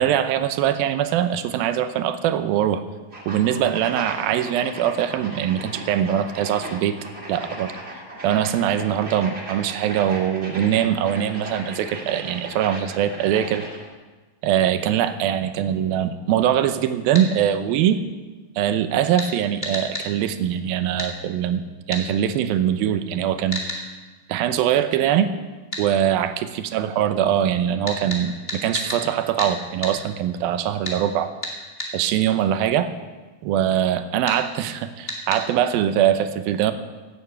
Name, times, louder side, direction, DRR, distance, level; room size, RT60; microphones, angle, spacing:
voice 1, 0.0-2.8 3.3-7.0 7.3-7.7 8.2-13.7 14.4-18.0 18.6-23.6 24.3-25.3 25.8-31.3 31.9-32.9 33.4-36.7, right 10 dB, 85° right, 10 dB, 2.6 m, -22 dB
sound 1, 3.1-13.9, right 1 dB, 20° right, 1.9 m, -37 dB
sound 2, 17.1-17.3 19.2-19.3 19.6-20.1 21.0-21.1 21.9-22.0 23.5-23.8 25.7-25.9 27.9-29.0 29.4-29.5 29.8-30.0 30.8-31.0 31.4-31.9 34.3-34.4 35.1-35.4, left 1 dB, 20° left, 1.8 m, -30 dB
16.5 x 8.9 x 6.9 m, 1.3 s
omnidirectional pair, 4.2 m